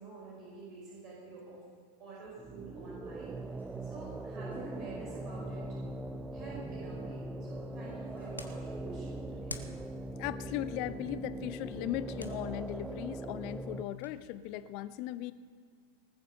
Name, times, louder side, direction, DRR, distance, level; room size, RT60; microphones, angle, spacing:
voice 1, 0.0-1.7 2.0-5.7 6.3-9.5, right 3 dB, 40° right, -5 dB, 5.3 m, -48 dB
sound 1, 2.4-13.8, right 2 dB, 10° right, 0.7 m, -41 dB
sound 2, 3.0-10.5, left 2 dB, 85° right, 3.7 m, -62 dB
sound 3, 7.5-14.2, left 2 dB, 85° left, 1.2 m, -52 dB
voice 2, 10.2-15.3, left 14 dB, 45° left, 15 dB, 0.7 m, -38 dB
19.0 x 9.4 x 6.8 m, 2.1 s
figure-of-eight pair, 90°, 0 cm